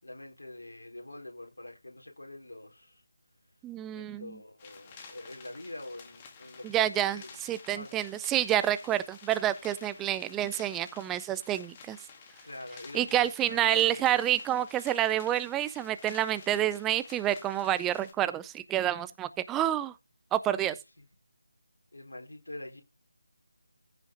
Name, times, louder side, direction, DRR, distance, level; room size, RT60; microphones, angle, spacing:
voice 1, 0.0-3.0 3.9-7.4 7.7-8.0 12.4-14.0 20.6-21.0 21.9-22.8, left 1 dB, 75° left, 4.1 m, -45 dB
voice 2, 3.6-4.4 6.6-12.0 12.9-19.9 20.3-20.8, right 12 dB, 10° right, 0.4 m, -28 dB
sound 1, 4.6-18.1, left 5 dB, 25° left, 2.3 m, -51 dB
15.0 x 5.7 x 3.7 m
figure-of-eight pair, 160°, 0 cm